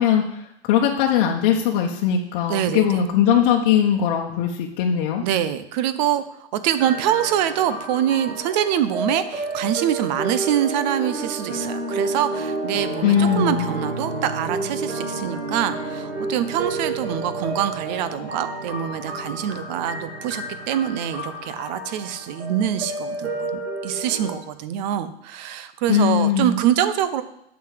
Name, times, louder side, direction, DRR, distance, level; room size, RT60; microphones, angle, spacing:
voice 1, 0.0-5.2 13.0-13.7 25.9-26.6, left 8 dB, 45° left, -1 dB, 1.2 m, -20 dB
voice 2, 2.5-3.0 5.2-6.2 6.5-27.2, right 10 dB, 40° right, 12 dB, 0.8 m, -25 dB
sound 1, 6.8-24.4, right 2 dB, 85° right, 3.9 m, -30 dB
8.4 x 6.1 x 7.6 m, 0.79 s
hypercardioid pair, 145°, 33 cm